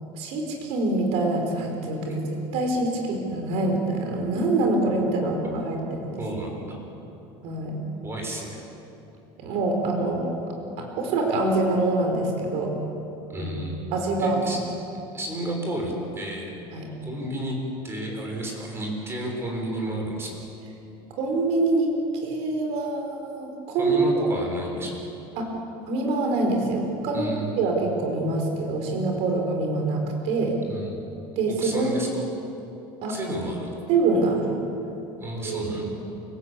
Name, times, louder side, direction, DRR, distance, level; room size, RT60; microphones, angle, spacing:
voice 1, 0.1-2.2 2.5-6.2 7.4-7.8 9.4-10.4 10.8-12.7 13.4-13.5 13.9-14.6 16.7-16.9 21.2-21.9 22.2-24.3 25.4-25.5 25.9-30.6 31.3-31.9 33.0-33.2 33.9-34.6 35.4-35.9, right 2 dB, 65° right, 2 dB, 4.8 m, -25 dB
voice 2, 6.2-6.8 8.0-8.6 13.3-14.6 15.1-16.5 17.0-17.6 17.8-20.3 23.8-24.9 27.1-27.6 30.7-31.0 31.6-32.2 33.1-33.7 35.2-35.9, right 1 dB, 20° right, 1 dB, 6.5 m, -32 dB
28.5 x 18.0 x 8.5 m, 2.9 s
cardioid pair, 150°, 12 cm